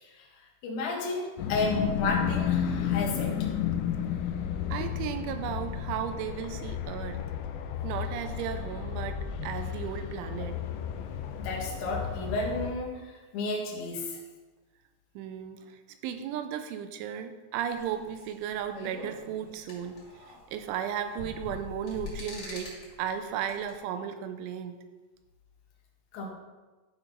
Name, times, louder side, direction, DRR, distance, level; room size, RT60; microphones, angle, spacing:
voice 1, 0.6-3.4 11.4-14.2 26.1-26.3, left 3 dB, 60° left, -2 dB, 2.1 m, -32 dB
sound 1, 1.4-12.7, left 8 dB, 80° left, 2.7 m, -32 dB
voice 2, 4.7-7.2 7.8-10.6 15.2-20.0 20.3-24.8, right 9 dB, 85° right, 8 dB, 3.0 m, -35 dB
sound 2, 17.7-23.8, left 3 dB, 35° left, 2.5 m, -44 dB
11.5 x 4.4 x 5.4 m, 1.2 s
omnidirectional pair, 5.4 m